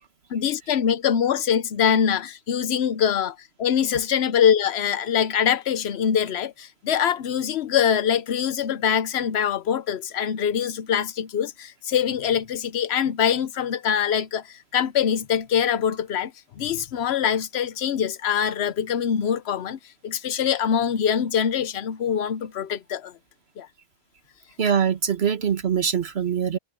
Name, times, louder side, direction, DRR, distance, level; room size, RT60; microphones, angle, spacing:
voice 1, 0.3-23.1 23.6-23.7, left 8 dB, 90° left, 1.0 m, -24 dB
voice 2, 24.6-26.6, right 7 dB, 80° right, 1.6 m, -23 dB
omnidirectional pair, 1.1 m